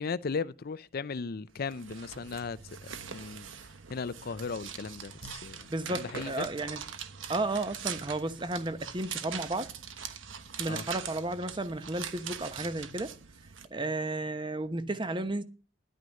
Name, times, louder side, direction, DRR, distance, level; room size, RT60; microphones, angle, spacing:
voice 1, 0.0-2.6 3.1-3.5 3.9-6.5 10.7-10.8, left 5 dB, 50° left, 0.5 m, -36 dB
sound 1, 1.6-13.7, right 7 dB, 85° right, 1.2 m, -42 dB
voice 2, 5.7-6.8 7.3-9.7 10.6-13.1 13.7-15.4, right 2 dB, 25° right, 1.0 m, -33 dB
11.0 x 9.2 x 6.4 m
head